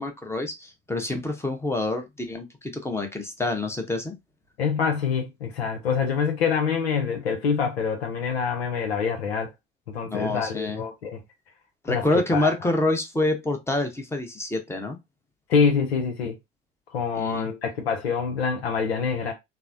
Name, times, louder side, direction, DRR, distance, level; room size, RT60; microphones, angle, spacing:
voice 1, 0.0-4.1 10.0-10.8 11.8-15.0 17.2-17.5, left 2 dB, 10° left, 0.8 m, -27 dB
voice 2, 4.6-9.5 9.9-11.2 11.9-12.0 12.3-12.5 15.5-16.4 16.9-19.3, left 6 dB, 80° left, 0.6 m, -25 dB
3.1 x 2.0 x 2.5 m
figure-of-eight pair, 60°, 31 cm